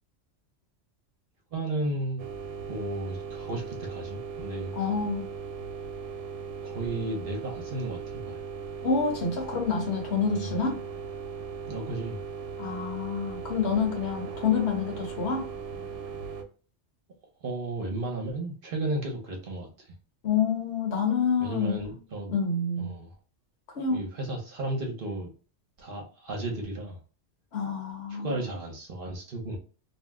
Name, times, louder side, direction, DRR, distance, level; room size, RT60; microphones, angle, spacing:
voice 1, 1.5-2.2 2.7-4.7 6.6-8.4 10.3-10.5 11.7-12.2 17.4-19.7 21.4-22.3 22.8-23.1 23.9-25.3 25.8-27.0 28.1-29.6, right 2 dB, 55° right, 0.8 m, -34 dB
sound 1, 2.2-16.4, right 6 dB, 90° right, 0.9 m, -38 dB
voice 2, 4.7-5.3 8.8-10.8 12.6-15.5 20.2-21.8 22.3-22.9 23.7-24.0 27.5-28.4, left 5 dB, 65° left, 1.0 m, -28 dB
2.6 x 2.0 x 3.4 m
omnidirectional pair, 1.2 m